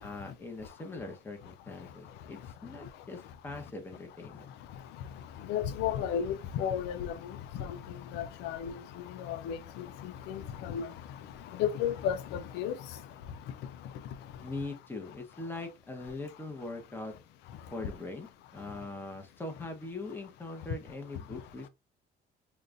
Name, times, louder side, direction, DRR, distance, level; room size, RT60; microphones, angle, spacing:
voice 1, 0.0-4.5 14.4-17.1 17.7-21.7, left 2 dB, 15° left, 1.1 m, -41 dB
voice 2, 5.4-10.9 11.5-13.0, left 9 dB, 85° left, 0.4 m, -34 dB
5.1 x 2.4 x 2.5 m
cardioid pair, 110°, 17 cm